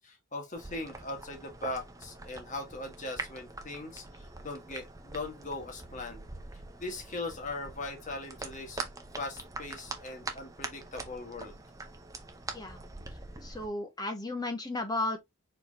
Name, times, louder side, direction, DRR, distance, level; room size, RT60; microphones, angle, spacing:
voice 1, 0.0-6.2 6.8-8.8 9.2-11.5, left 2 dB, 35° left, 1.6 m, -40 dB
sound 1, 0.5-13.7, right 3 dB, 15° right, 0.8 m, -44 dB
voice 2, 13.4-15.2, left 2 dB, 20° left, 1.0 m, -34 dB
4.6 x 4.6 x 2.4 m
head